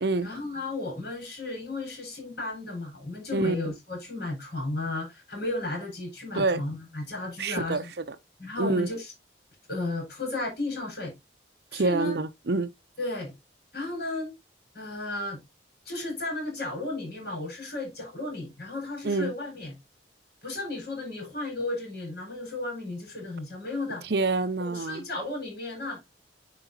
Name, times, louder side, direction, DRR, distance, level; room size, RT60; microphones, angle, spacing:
voice 1, 0.2-7.9 8.4-9.1 9.7-11.1 11.7-12.2 13.0-13.3 13.7-14.3 14.7-15.4 15.8-19.7 20.4-24.0 24.7-26.0, left 2 dB, 55° left, 4.8 m, -34 dB
voice 2, 7.4-8.2 8.6-8.9 11.7-12.7 19.0-19.3 24.0-25.0, right 3 dB, 60° right, 0.6 m, -27 dB
9.9 x 4.8 x 2.7 m
head